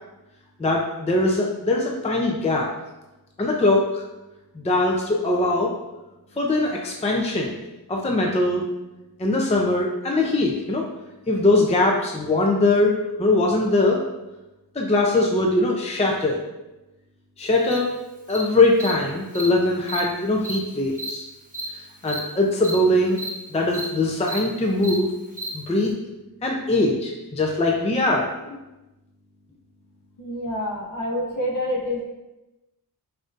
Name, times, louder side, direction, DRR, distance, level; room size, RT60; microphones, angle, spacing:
voice 1, 0.6-2.7 3.4-4.0 4.5-5.7 6.4-7.6 7.9-8.6 9.2-10.8 11.3-14.0 14.7-16.4 17.4-17.9 18.3-21.3 21.7-23.2 23.5-25.1 25.5-25.9 26.4-28.6, left 2 dB, 15° left, -1 dB, 0.4 m, -21 dB
Cricket, 17.7-17.8 18.3-18.4 18.8-18.9 19.3-19.5 19.8-20.0 20.4-20.6 21.0-21.1 21.5-21.7 22.0-22.2 22.6-22.8 23.1-23.3 23.7-23.9 24.2-24.4 24.8-25.0 25.3-25.5, right 1 dB, 20° right, 0.9 m, -32 dB
voice 2, 30.2-32.0, left 1 dB, 50° left, -2 dB, 1.0 m, -27 dB
5.5 x 2.6 x 2.4 m, 1.0 s
wide cardioid pair, 80°, 39 cm